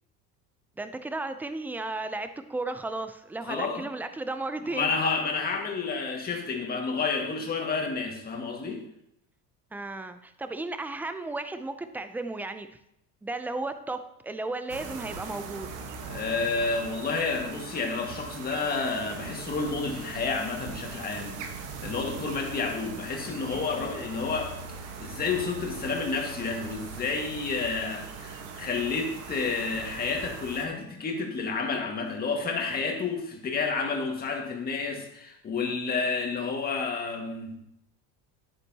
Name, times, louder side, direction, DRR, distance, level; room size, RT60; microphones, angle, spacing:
voice 1, 0.8-4.9 9.7-12.7 13.2-15.7, right 2 dB, 5° right, 9 dB, 0.4 m, -34 dB
voice 2, 3.5-3.8 4.7-8.8 16.1-24.5 25.0-37.5, left 4 dB, 25° left, 2 dB, 1.7 m, -30 dB
sound 1, 14.7-30.7, right 5 dB, 60° right, 1.3 m, -41 dB
9.8 x 9.2 x 2.8 m, 0.77 s
cardioid pair, 140°, 36 cm